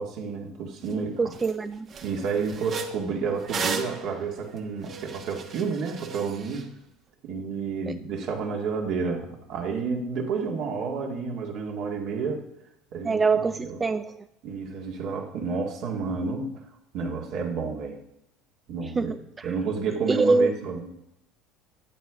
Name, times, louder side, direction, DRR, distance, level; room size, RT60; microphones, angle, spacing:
voice 1, 0.0-1.3 2.0-6.7 7.2-12.5 12.9-13.8 14.4-16.5 16.9-18.0 18.7-19.1 19.4-20.9, right 5 dB, 60° right, 2.0 m, -30 dB
sound 1, 0.9-1.0 1.3-1.5 1.9-6.6, right 4 dB, 45° right, 1.2 m, -35 dB
voice 2, 1.2-1.9 13.0-14.1 19.0-19.5 20.1-20.5, right 4 dB, 25° right, 0.3 m, -24 dB
13.0 x 8.3 x 3.7 m
hypercardioid pair, 80°, 0 cm